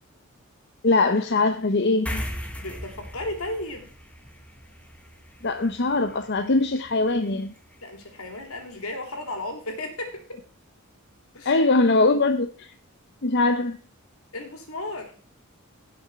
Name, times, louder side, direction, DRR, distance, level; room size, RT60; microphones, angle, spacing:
voice 1, 0.8-2.2 5.4-7.5 11.4-12.7 13.2-13.8, left 3 dB, 50° left, 0.7 m, -22 dB
sound 1, 2.1-8.8, equal, 5° left, 1.3 m, -39 dB
voice 2, 2.6-3.9 7.8-10.2 11.3-11.6 14.3-15.1, left 1 dB, 70° left, 3.0 m, -34 dB
17.0 x 6.2 x 4.7 m
head